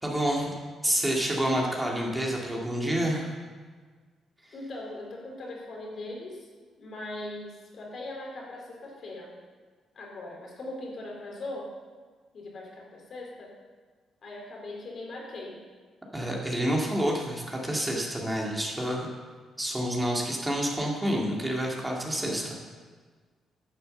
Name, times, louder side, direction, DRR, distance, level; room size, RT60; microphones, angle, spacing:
voice 1, 0.0-0.5 0.8-3.3 16.1-19.1 19.6-22.6, right 1 dB, 10° right, -2 dB, 2.1 m, -28 dB
voice 2, 4.5-6.5 6.8-9.3 9.9-11.7 12.3-13.5 14.2-15.6, left 2 dB, 55° left, -1 dB, 3.3 m, -40 dB
11.0 x 6.9 x 6.7 m, 1.5 s
cardioid pair, 90°, 0 cm